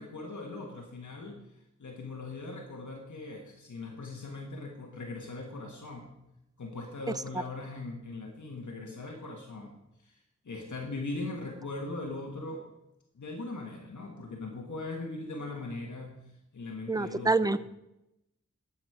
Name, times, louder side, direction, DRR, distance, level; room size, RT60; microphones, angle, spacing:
voice 1, 0.0-1.4 1.8-6.1 6.6-12.6 13.1-16.1 16.5-17.6, left 2 dB, 85° left, 1 dB, 1.6 m, -40 dB
voice 2, 16.9-17.6, right 3 dB, 15° right, 15 dB, 0.5 m, -26 dB
12.0 x 7.5 x 4.9 m, 0.87 s
wide cardioid pair, 50°, 29 cm